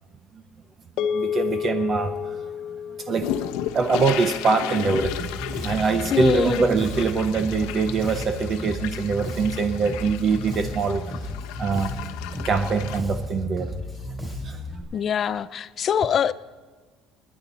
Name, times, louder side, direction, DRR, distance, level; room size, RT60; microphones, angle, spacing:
sound 1, 1.0-5.5, left 7 dB, 50° left, 0.8 m, -31 dB
voice 1, 1.0-2.5 2.9-11.0 11.6-13.7 14.4-14.6, right 4 dB, 25° right, 0.6 m, -24 dB
sound 2, 3.2-13.0, left 11 dB, 85° left, 0.9 m, -34 dB
Bass guitar, 4.9-14.8, left 1 dB, 10° right, 3.6 m, -34 dB
voice 2, 6.1-6.6 14.9-16.3, left 8 dB, 30° left, 0.4 m, -23 dB
27.5 x 10.0 x 4.2 m
cardioid pair, 180°, 0 cm